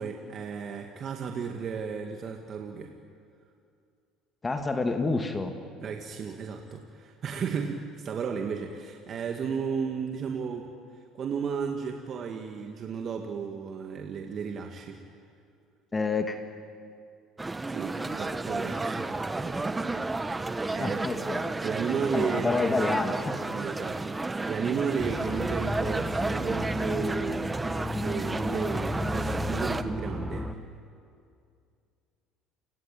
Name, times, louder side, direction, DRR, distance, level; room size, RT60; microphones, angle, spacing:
voice 1, 0.0-2.9 5.8-10.7 11.1-15.0 17.7-19.1 19.5-20.4 20.7-21.0 21.6-22.5 23.5-30.5, right 6 dB, 45° right, 3 dB, 2.2 m, -34 dB
voice 2, 4.4-5.5 15.9-16.4 20.8-21.4 22.1-23.3, left 3 dB, 20° left, 5 dB, 2.4 m, -28 dB
sound 1, 17.4-29.8, right 2 dB, 15° right, 1.3 m, -32 dB
sound 2, 25.0-30.6, left 1 dB, 5° left, 2.0 m, -33 dB
29.0 x 21.5 x 9.2 m, 2.4 s
supercardioid pair, 80°, 0 cm